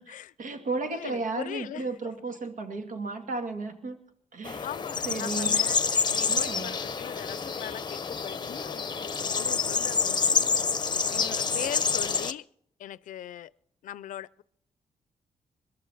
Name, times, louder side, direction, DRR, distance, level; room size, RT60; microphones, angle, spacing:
voice 1, 0.0-4.0 4.3-4.7 5.0-5.6 6.3-6.7, right 3 dB, 80° right, 6 dB, 2.2 m, -34 dB
voice 2, 0.8-1.9 4.6-5.8 6.1-10.4 11.1-12.5 12.8-13.5 13.8-14.4, left 12 dB, 80° left, 20 dB, 0.5 m, -40 dB
sound 1, 4.4-12.3, left 5 dB, 35° left, 0.8 m, -28 dB
22.5 x 12.0 x 4.0 m, 0.70 s
cardioid pair, 85°, 13 cm